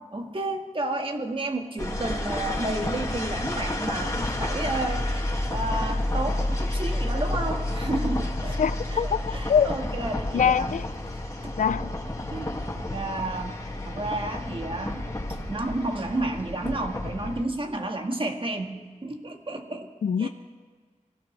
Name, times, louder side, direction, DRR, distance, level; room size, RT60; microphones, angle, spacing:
voice 1, 0.1-8.6 8.9-10.7 11.1-11.6 12.3-19.9 20.2-20.3, right 2 dB, 40° right, 1.7 m, -32 dB
sound 1, 1.8-17.4, left 1 dB, 25° left, 2.1 m, -30 dB
voice 2, 10.3-10.8 11.6-11.9 20.0-20.3, left 7 dB, 75° left, 0.4 m, -22 dB
24.0 x 15.0 x 3.3 m
wide cardioid pair, 60°, 13 cm